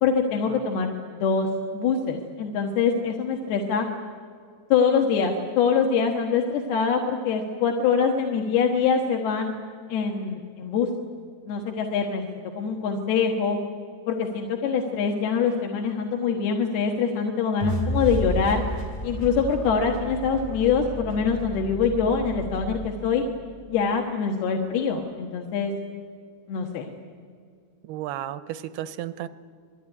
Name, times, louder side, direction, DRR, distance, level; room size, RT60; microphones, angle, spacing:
voice 1, 0.0-3.9 4.7-9.6 9.9-10.9 11.5-12.2 12.6-13.6 14.1-18.6 19.0-23.2 23.7-25.7 26.5-26.9, left 6 dB, 75° left, 2 dB, 3.3 m, -24 dB
sound 1, 17.6-23.8, right 1 dB, 25° left, 1.1 m, -32 dB
voice 2, 27.8-29.3, right 12 dB, 80° right, 14 dB, 2.7 m, -33 dB
27.0 x 21.0 x 9.9 m, 2.2 s
omnidirectional pair, 4.7 m